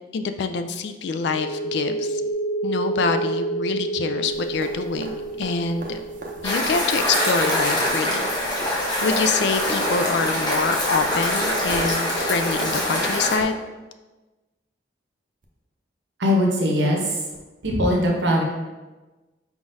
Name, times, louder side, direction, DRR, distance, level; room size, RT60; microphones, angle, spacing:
voice 1, 0.1-2.2 2.6-6.0 6.4-8.3 9.0-13.5, left 4 dB, 65° left, 8 dB, 0.3 m, -25 dB
sound 1, 1.3-8.6, right 2 dB, 40° left, 1.5 m, -29 dB
sound 2, 4.3-13.4 15.4-15.5, right 2 dB, 45° right, 0.6 m, -38 dB
sound 3, 6.4-13.4, left 1 dB, 25° left, 0.9 m, -24 dB
voice 2, 16.2-17.2 17.6-18.4, equal, 75° right, 0 dB, 0.9 m, -20 dB
4.6 x 3.7 x 2.6 m, 1.2 s
head